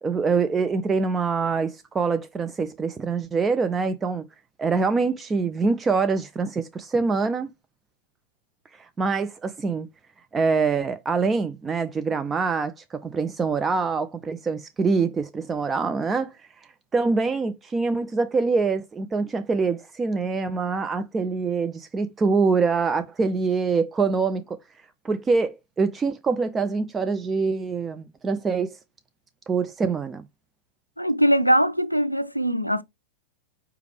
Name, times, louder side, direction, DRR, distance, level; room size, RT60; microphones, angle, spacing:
voice 1, 0.0-4.2 4.6-7.5 8.8-9.9 10.3-16.3 16.9-24.6 25.0-28.8 29.5-30.2, right 4 dB, 20° right, 0.3 m, -25 dB
voice 2, 31.0-32.8, equal, 90° left, 0.3 m, -21 dB
4.6 x 3.2 x 3.2 m
figure-of-eight pair, 90°, 0 cm